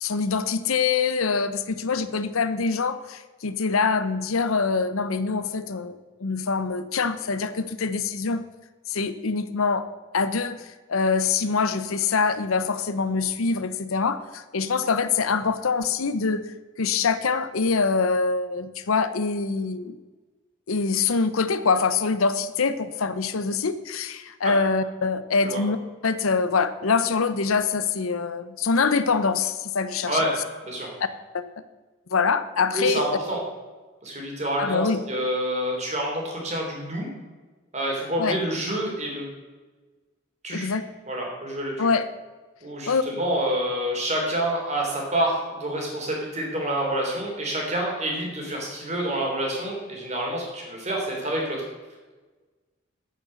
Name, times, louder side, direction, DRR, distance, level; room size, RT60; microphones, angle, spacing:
voice 1, 0.0-8.4 8.9-9.9 10.1-10.6 10.9-16.4 16.8-20.0 20.7-25.8 26.0-30.2 31.3-31.4 32.1-33.2 34.6-35.0 38.2-38.4 40.5-40.8 41.8-42.1 42.9-43.0, left 4 dB, 85° left, 12 dB, 0.7 m, -24 dB
voice 2, 32.7-33.4 34.0-37.1 37.7-39.2 40.4-40.7 41.1-41.9 42.6-51.6, right 1 dB, 35° right, -1 dB, 3.2 m, -27 dB
9.0 x 8.9 x 6.5 m, 1.3 s
head